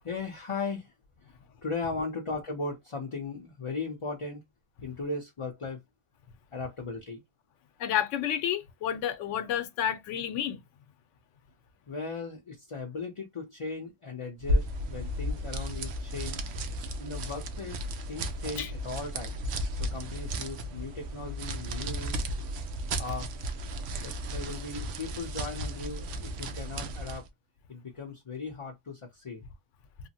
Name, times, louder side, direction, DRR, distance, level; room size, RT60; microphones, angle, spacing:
voice 1, 0.0-0.9 1.6-4.4 4.8-5.8 6.5-7.2 11.9-16.4 17.0-19.4 19.7-22.2 23.0-23.3 24.0-27.3 27.7-29.5, left 3 dB, 35° left, 0.5 m, -37 dB
voice 2, 7.8-10.6 18.6-18.7, left 10 dB, 90° left, 0.9 m, -30 dB
sound 1, 14.4-27.3, equal, 90° right, 0.9 m, -34 dB
3.2 x 2.0 x 2.7 m
omnidirectional pair, 1.2 m